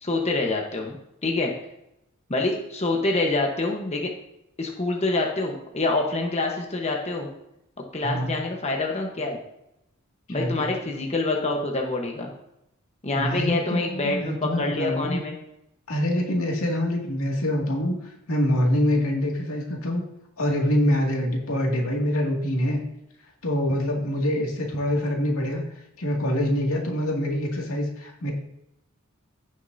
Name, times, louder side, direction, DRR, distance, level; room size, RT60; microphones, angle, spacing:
voice 1, 0.0-1.0 1.2-1.5 2.3-4.1 4.6-7.3 7.9-9.4 10.3-12.3 13.0-15.4, left 2 dB, 30° left, 1 dB, 1.1 m, -26 dB
voice 2, 8.0-8.3 10.3-10.7 13.1-15.2 15.9-20.0 20.4-22.8 23.4-25.6 26.0-28.3, equal, 90° left, -1 dB, 2.2 m, -25 dB
15.5 x 6.5 x 2.7 m, 0.83 s
head